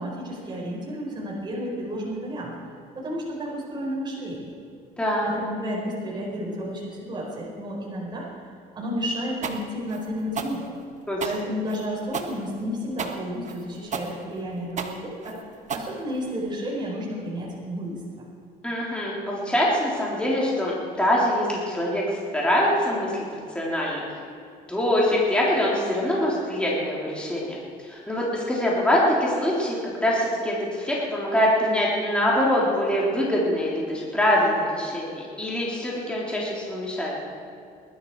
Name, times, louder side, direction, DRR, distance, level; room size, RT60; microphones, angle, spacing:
voice 1, 0.0-2.5 2.9-4.5 5.2-8.3 8.7-10.7 11.2-15.4 15.7-18.0, equal, 25° right, -4 dB, 4.7 m, -31 dB
voice 2, 5.0-5.3 11.1-11.3 18.6-24.2 24.7-37.1, left 1 dB, 5° left, -5 dB, 3.6 m, -24 dB
sound 1, 9.4-16.5, right 6 dB, 45° right, 1.4 m, -33 dB
20.5 x 12.5 x 4.8 m, 2.4 s
cardioid pair, 110°, 17 cm